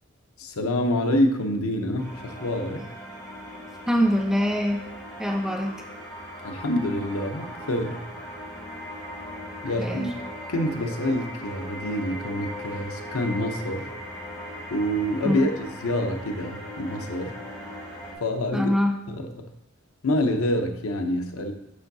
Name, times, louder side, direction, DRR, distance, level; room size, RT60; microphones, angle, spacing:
voice 1, 0.4-2.9 6.4-8.1 9.6-10.1 10.5-13.9 14.7-17.4 18.2-18.7 19.1-19.5 20.0-21.5, left 1 dB, 90° left, 5 dB, 0.7 m, -27 dB
sound 1, 2.0-18.1, equal, 15° left, 2.3 m, -39 dB
voice 2, 3.9-4.8 5.2-5.8 9.8-10.1 15.2-15.5 18.5-19.0, equal, ahead, 1 dB, 0.5 m, -24 dB
8.5 x 4.6 x 2.7 m, 0.86 s
head